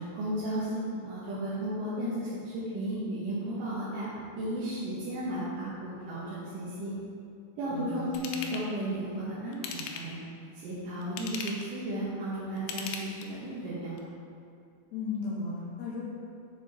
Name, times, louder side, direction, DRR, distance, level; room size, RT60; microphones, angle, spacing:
voice 1, 0.0-4.1 4.4-7.0 7.6-10.2 10.5-14.0, right 1 dB, 65° right, -10 dB, 2.6 m, -34 dB
voice 2, 7.7-8.1 14.9-16.1, left 4 dB, 65° left, -5 dB, 1.9 m, -35 dB
Ratchet pawl / Tools, 8.1-8.7 9.5-10.2 11.0-11.7 12.6-13.5 14.0-14.1, left 5 dB, 85° left, 2.7 m, -38 dB
7.1 x 6.7 x 4.1 m, 2.5 s
omnidirectional pair, 4.5 m